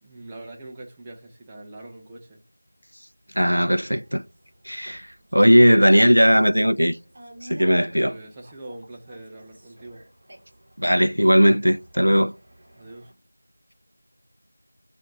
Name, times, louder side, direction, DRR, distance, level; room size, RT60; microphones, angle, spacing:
voice 1, 0.0-2.4 8.1-10.0 12.7-13.1, right 2 dB, 10° right, 0.4 m, -42 dB
sound 1, 3.4-13.1, right 1 dB, 25° right, 1.1 m, -51 dB
voice 2, 3.4-4.2 4.7-7.0 7.4-8.2 10.8-12.3, equal, 90° right, 0.4 m, -18 dB
7.1 x 2.5 x 2.6 m
figure-of-eight pair, 175°, 0 cm